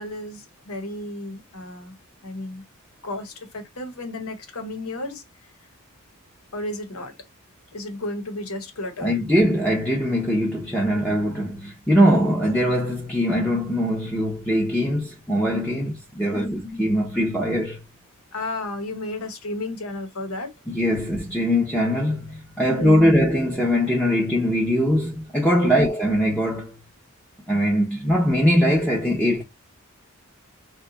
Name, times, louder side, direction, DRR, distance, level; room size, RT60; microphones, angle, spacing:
voice 1, 0.0-2.0 2.2-2.6 3.0-5.2 6.5-7.1 7.7-9.2 16.3-16.8 18.3-20.5 22.7-23.1 25.6-25.9, left 1 dB, 80° left, 0.9 m, -32 dB
voice 2, 9.0-17.8 20.7-26.8 27.5-29.4, equal, 5° left, 0.6 m, -21 dB
2.7 x 2.2 x 3.8 m
head